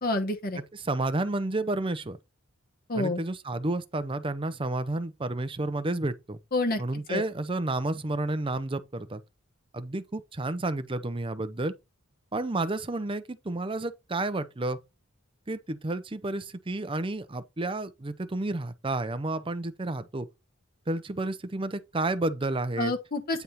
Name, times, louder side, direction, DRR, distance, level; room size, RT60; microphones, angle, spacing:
voice 1, 0.0-0.6 2.9-3.2 6.5-6.8 7.1-7.2 22.8-23.4, left 2 dB, 45° left, 1.1 m, -28 dB
voice 2, 0.7-2.2 2.9-6.4 6.8-9.2 9.7-11.7 12.3-14.8 15.5-20.3 20.9-22.9, right 2 dB, 25° right, 0.6 m, -31 dB
9.2 x 3.5 x 4.2 m
head